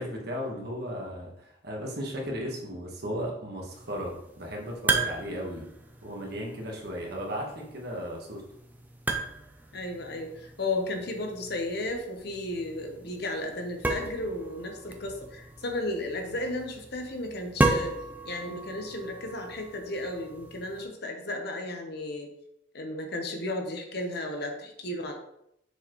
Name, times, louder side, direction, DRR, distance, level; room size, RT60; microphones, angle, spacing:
voice 1, 0.0-5.7 6.0-8.4, equal, 55° right, -1 dB, 1.5 m, -35 dB
sound 1, 3.7-20.8, right 2 dB, 10° right, 0.5 m, -35 dB
voice 2, 9.7-17.9 18.2-22.3 22.7-25.1, left 1 dB, 55° left, 3 dB, 1.0 m, -34 dB
6.6 x 4.6 x 3.1 m, 0.76 s
head